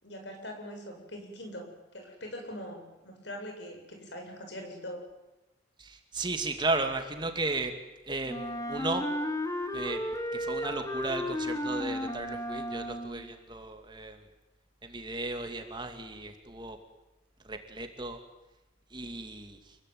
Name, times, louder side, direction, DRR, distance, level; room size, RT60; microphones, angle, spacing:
voice 1, 0.0-5.0, equal, 65° left, 4 dB, 7.8 m, -42 dB
voice 2, 5.8-7.7 8.1-9.0 9.7-10.0 10.3-14.2 14.8-16.8 17.4-18.2 18.9-19.8, right 2 dB, 25° right, 6 dB, 2.5 m, -35 dB
Wind instrument woodwind instrument, 8.3-13.3, equal, 15° left, 2.3 m, -34 dB
28.5 x 22.0 x 9.5 m, 1.0 s
head